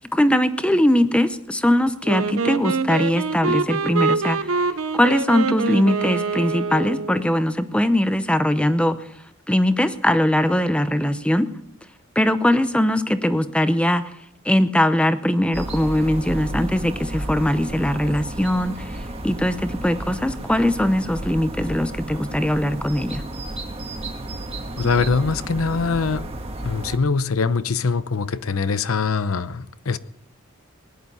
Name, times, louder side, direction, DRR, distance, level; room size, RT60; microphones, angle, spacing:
voice 1, 0.0-4.5 4.9-9.0 9.5-11.5 12.2-14.0 14.4-23.2, left 1 dB, 5° left, 11 dB, 0.7 m, -21 dB
Wind instrument woodwind instrument, 2.0-7.2, right 4 dB, 75° right, 0.9 m, -25 dB
sound 1, 15.5-27.0, right 1 dB, 30° right, 1.5 m, -32 dB
voice 2, 24.8-26.2 26.6-30.0, left 4 dB, 75° left, 15 dB, 0.7 m, -23 dB
19.0 x 11.0 x 5.6 m, 0.74 s
head